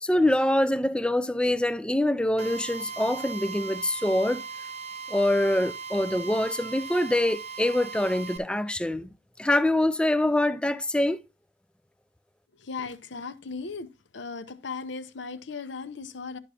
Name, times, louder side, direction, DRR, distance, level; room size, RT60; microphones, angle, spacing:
voice 1, 0.0-4.4 5.1-9.1 9.4-11.2, left 1 dB, 5° left, 0.3 m, -25 dB
Drill, 2.4-8.4, right 5 dB, 35° right, 0.8 m, -38 dB
voice 2, 12.7-13.9 14.1-16.4, left 4 dB, 65° left, 0.8 m, -37 dB
11.0 x 6.2 x 2.7 m
head